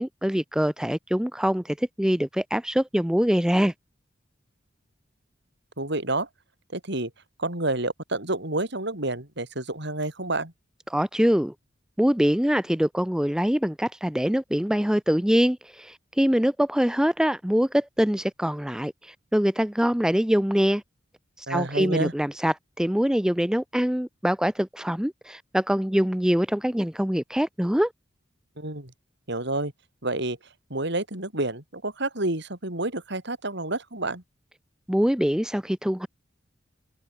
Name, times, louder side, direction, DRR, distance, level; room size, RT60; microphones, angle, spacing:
voice 1, 0.0-3.7 10.9-11.5 12.0-20.8 21.4-27.9 34.9-36.1, equal, 5° right, 0.6 m, -24 dB
voice 2, 5.8-6.3 6.7-7.1 7.4-10.5 21.5-22.1 28.6-28.9 29.3-29.7 30.0-30.4 30.7-34.2, right 2 dB, 65° right, 7.2 m, -29 dB
head